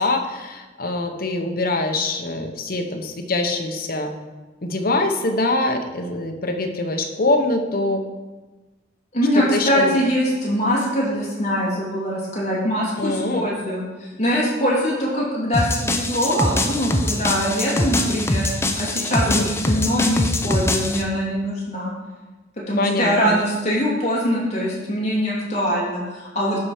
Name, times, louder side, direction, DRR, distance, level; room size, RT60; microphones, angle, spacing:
voice 1, 0.0-4.1 4.6-8.0 9.4-10.0 13.0-13.5 19.3-19.5 22.8-23.4, left 2 dB, 55° left, 5 dB, 0.9 m, -23 dB
voice 2, 9.1-21.9 22.7-26.6, equal, 40° left, -5 dB, 2.7 m, -23 dB
sound 1, 15.5-21.0, left 1 dB, 15° left, 0.5 m, -23 dB
12.0 x 4.4 x 4.9 m, 1.2 s
head